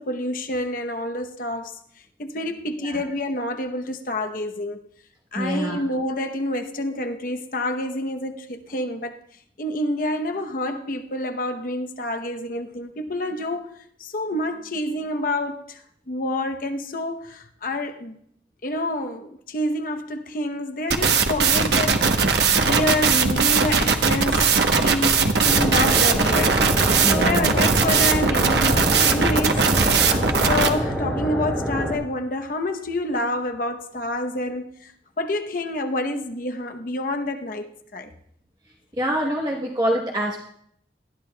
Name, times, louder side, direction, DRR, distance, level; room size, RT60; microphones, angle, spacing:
voice 1, 0.0-1.8 2.2-4.8 5.3-9.2 9.6-18.2 18.6-26.6 27.1-34.9 35.2-38.1, left 1 dB, 50° left, 0.8 m, -28 dB
voice 2, 5.3-5.8 27.0-27.5 39.0-40.4, right 1 dB, 20° right, 0.9 m, -25 dB
sound 1, 20.9-30.7, right 5 dB, 65° right, 1.0 m, -19 dB
sound 2, 25.4-31.9, equal, ahead, 2.8 m, -27 dB
19.5 x 12.5 x 2.2 m
head